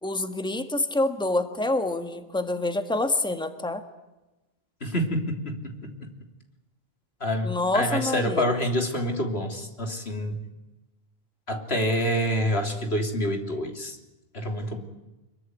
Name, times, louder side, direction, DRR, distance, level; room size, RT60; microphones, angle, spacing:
voice 1, 0.0-3.8 7.4-8.5, left 2 dB, 5° left, 7 dB, 1.7 m, -27 dB
voice 2, 4.8-6.1 7.2-10.4 11.5-14.0 14.3-14.8, equal, 80° left, 3 dB, 3.6 m, -27 dB
26.0 x 22.5 x 9.6 m, 1.0 s
omnidirectional pair, 1.0 m